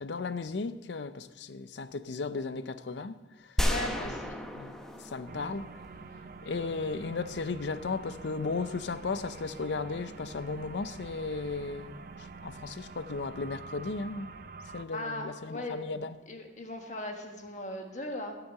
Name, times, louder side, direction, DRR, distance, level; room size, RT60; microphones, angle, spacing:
voice 1, 0.0-3.2 4.0-4.1 4.6-5.7 6.4-14.3 14.7-16.2, left 4 dB, 70° left, 0.5 m, -35 dB
voice 2, 3.6-4.4 14.9-15.8 16.3-18.4, left 1 dB, 40° left, 1.4 m, -38 dB
sound 1, 3.6-6.5, equal, 5° left, 0.7 m, -33 dB
sound 2, 5.3-14.8, right 4 dB, 50° right, 0.5 m, -46 dB
14.0 x 5.9 x 7.5 m
head